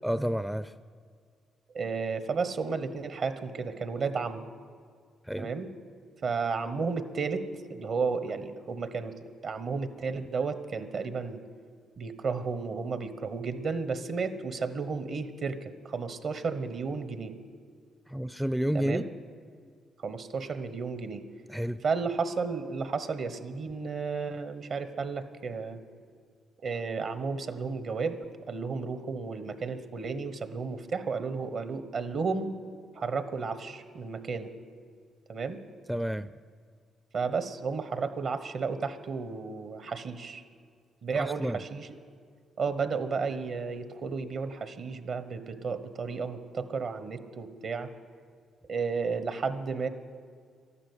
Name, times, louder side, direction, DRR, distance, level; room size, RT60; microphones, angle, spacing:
voice 1, 0.0-0.7 5.3-5.5 18.1-19.1 21.5-21.8 35.9-36.3 41.1-41.6, equal, 5° right, 13 dB, 0.4 m, -30 dB
voice 2, 1.7-4.4 5.3-5.7 6.2-7.4 7.7-9.1 9.4-11.4 12.0-17.3 18.7-19.1 20.0-21.2 21.8-25.8 26.6-28.2 28.5-32.5 32.9-34.5 35.3-35.6 37.1-40.4 41.0-42.0 42.6-47.9 48.7-49.9, right 5 dB, 60° right, 10 dB, 1.2 m, -33 dB
12.0 x 11.5 x 8.3 m, 2.1 s
supercardioid pair, 70°, 0 cm